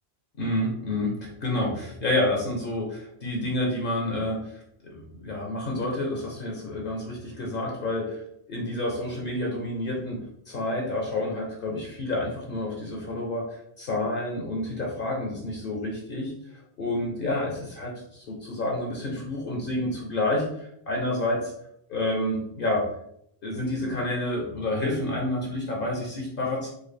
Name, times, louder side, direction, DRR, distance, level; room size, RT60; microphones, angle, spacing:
voice 1, 0.4-8.2 8.5-10.2 10.5-13.5 13.8-16.3 16.8-21.5 21.9-22.9 23.4-26.7, left 1 dB, 55° left, -1 dB, 0.8 m, -29 dB
3.8 x 2.3 x 3.2 m, 0.75 s
omnidirectional pair, 1.1 m